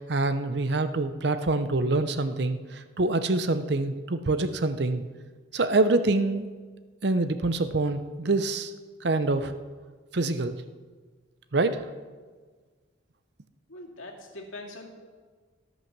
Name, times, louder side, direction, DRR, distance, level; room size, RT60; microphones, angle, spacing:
voice 1, 0.0-5.0 5.5-6.5 7.0-8.7 9.0-9.5 10.1-10.5 11.5-11.8, right 2 dB, 60° right, 11 dB, 0.7 m, -25 dB
voice 2, 13.7-14.9, left 2 dB, 90° left, 0 dB, 2.3 m, -42 dB
18.0 x 6.1 x 6.0 m, 1.4 s
head